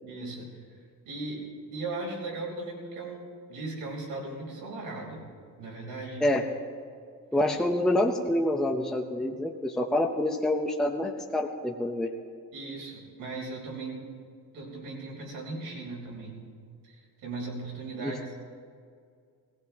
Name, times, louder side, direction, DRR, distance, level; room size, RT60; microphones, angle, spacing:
voice 1, 0.0-0.6 1.0-1.4 1.7-3.2 3.5-5.3 5.6-6.3 12.5-14.0 14.5-16.5 16.8-18.4, right 2 dB, 90° right, -2 dB, 5.0 m, -38 dB
voice 2, 7.3-12.1 18.0-18.1, left 1 dB, ahead, 1 dB, 0.7 m, -27 dB
19.0 x 16.0 x 3.5 m, 2.2 s
cardioid pair, 155°, 34 cm